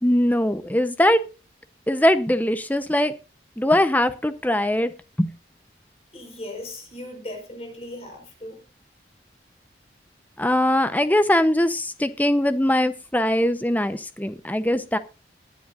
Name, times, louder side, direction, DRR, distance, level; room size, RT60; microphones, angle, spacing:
voice 1, 0.0-1.2 1.9-3.1 3.6-4.9 5.2-5.3 10.4-15.0, left 1 dB, 10° left, 11 dB, 0.8 m, -21 dB
voice 2, 6.1-8.6, left 1 dB, 35° left, 2 dB, 4.8 m, -37 dB
20.0 x 10.0 x 2.5 m, 0.31 s
head